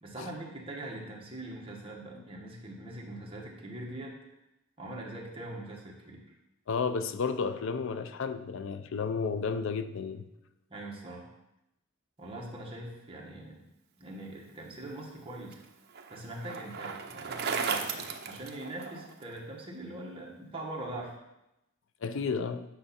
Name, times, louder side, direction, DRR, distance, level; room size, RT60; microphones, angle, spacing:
voice 1, 0.0-4.1 4.8-6.2 10.7-11.3 12.2-13.7 14.0-15.6 16.1-21.2, right 1 dB, 25° right, -2 dB, 1.5 m, -42 dB
voice 2, 6.7-10.2 22.0-22.7, left 5 dB, 60° left, 10 dB, 0.5 m, -32 dB
Bicycle, 14.8-19.2, right 5 dB, 50° right, 0.7 m, -36 dB
9.0 x 5.7 x 4.2 m, 0.91 s
head